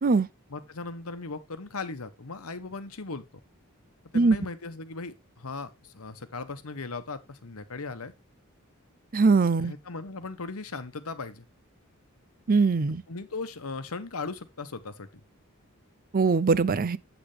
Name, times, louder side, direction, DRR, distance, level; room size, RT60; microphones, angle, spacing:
voice 1, 0.5-3.2 4.1-8.1 9.6-11.4 13.1-15.1, left 3 dB, 90° left, 1.1 m, -38 dB
voice 2, 9.1-9.7 12.5-13.0 16.1-17.0, right 4 dB, 40° right, 0.5 m, -21 dB
8.0 x 7.8 x 3.3 m
head